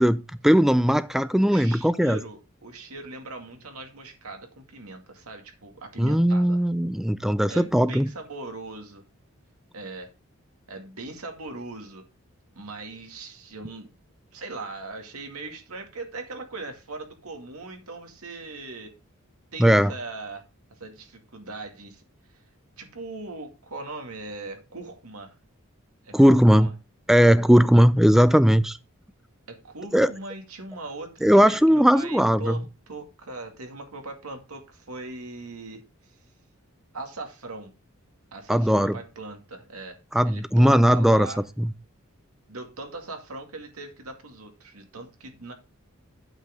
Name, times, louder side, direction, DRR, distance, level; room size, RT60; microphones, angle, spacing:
voice 1, 0.0-2.2 6.0-8.1 19.6-19.9 26.1-26.7 27.1-28.8 29.9-30.1 31.2-32.6 38.5-39.0 40.1-41.3 41.6-41.7, equal, ahead, 0.4 m, -18 dB
voice 2, 1.4-6.6 7.5-9.0 9.7-10.1 10.7-12.1 12.6-13.9 14.3-18.9 19.5-20.4 20.7-22.0 22.3-22.4 22.8-25.3 26.0-26.7 29.5-36.2 36.9-37.7 38.3-41.5 42.5-45.5, right 3 dB, 90° right, 2.2 m, -40 dB
8.9 x 7.4 x 3.6 m
head